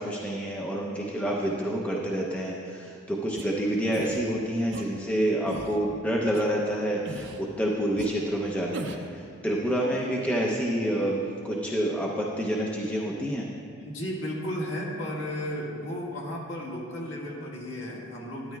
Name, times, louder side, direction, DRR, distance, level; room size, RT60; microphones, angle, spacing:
voice 1, 0.0-13.5, right 1 dB, 5° left, -3 dB, 0.6 m, -28 dB
sound 1, 3.4-3.5 3.9-4.2 4.7-4.9 5.5-5.8 6.3-6.4 7.0-7.4 8.0-8.1 8.7-9.1, right 3 dB, 55° right, 0.5 m, -38 dB
voice 2, 13.8-18.6, equal, 60° left, -3 dB, 1.7 m, -34 dB
12.0 x 10.0 x 2.3 m, 2.3 s
head